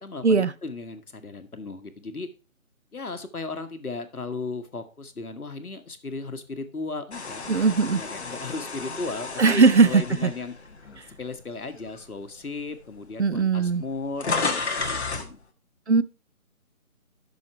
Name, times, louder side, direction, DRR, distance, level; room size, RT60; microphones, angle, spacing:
voice 1, 0.0-2.3 2.9-10.5 11.2-14.3 14.5-15.4, left 3 dB, 85° left, 1.6 m, -36 dB
sound 1, 7.1-11.4 11.9-12.1 13.0-13.1 13.3-15.3, left 4 dB, 50° left, 1.4 m, -32 dB
voice 2, 7.5-8.0 9.4-10.3 13.2-13.8 15.9-16.0, right 4 dB, 55° right, 0.5 m, -19 dB
9.6 x 6.3 x 4.5 m
figure-of-eight pair, 165°, 43 cm